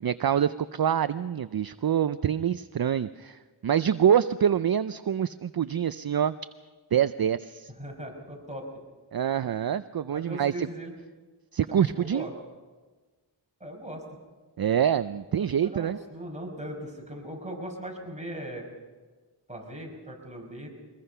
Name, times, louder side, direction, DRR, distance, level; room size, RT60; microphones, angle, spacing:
voice 1, 0.0-6.3 6.9-7.7 9.1-10.7 11.5-12.3 14.6-16.0, right 9 dB, 55° right, 13 dB, 0.5 m, -26 dB
voice 2, 7.8-8.7 10.1-10.9 11.7-12.3 13.6-14.1 15.4-18.7 19.5-20.7, right 1 dB, 15° right, 0 dB, 5.3 m, -39 dB
23.5 x 20.5 x 5.6 m, 1.3 s
wide cardioid pair, 55°, 44 cm